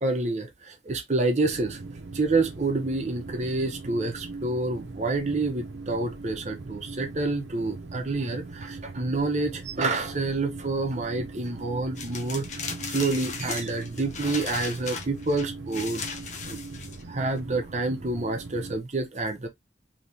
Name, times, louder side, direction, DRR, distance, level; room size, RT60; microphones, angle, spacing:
voice 1, 0.0-1.8 2.1-16.0 16.4-16.6 17.1-19.5, right 3 dB, 40° right, 0.7 m, -28 dB
sound 1, 1.4-18.8, right 3 dB, 80° right, 0.7 m, -40 dB
sound 2, 12.0-17.4, left 6 dB, 40° left, 0.6 m, -37 dB
3.2 x 2.9 x 2.7 m
head